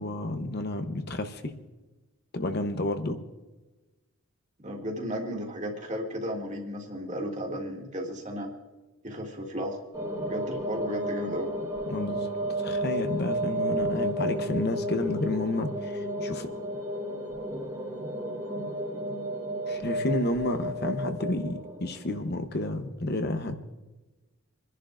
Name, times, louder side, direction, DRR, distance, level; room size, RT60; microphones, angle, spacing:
voice 1, 0.0-1.5 2.3-3.2 11.9-12.3 12.6-16.5 19.7-23.6, left 1 dB, 50° left, 7 dB, 0.9 m, -31 dB
voice 2, 4.6-8.5 9.0-9.8 10.2-11.5, equal, 35° right, 0 dB, 2.4 m, -34 dB
sound 1, 9.9-22.4, equal, 20° right, 1.7 m, -32 dB
27.0 x 11.0 x 2.5 m, 1.2 s
head